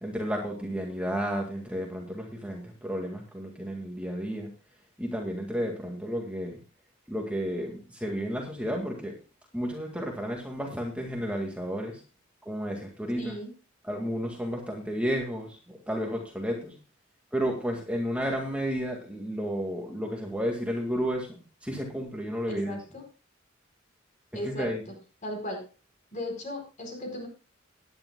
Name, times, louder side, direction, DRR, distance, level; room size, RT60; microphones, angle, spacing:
voice 1, 0.0-4.5 5.0-6.6 7.1-9.1 9.5-11.9 12.5-13.3 13.9-16.7 17.3-22.8 24.4-24.8, equal, 5° right, 0 dB, 1.9 m, -32 dB
voice 2, 13.2-13.5 22.5-23.0 24.3-24.9 25.2-25.6 26.1-27.3, left 1 dB, 40° left, 2 dB, 4.6 m, -36 dB
18.0 x 10.5 x 2.2 m, 0.33 s
head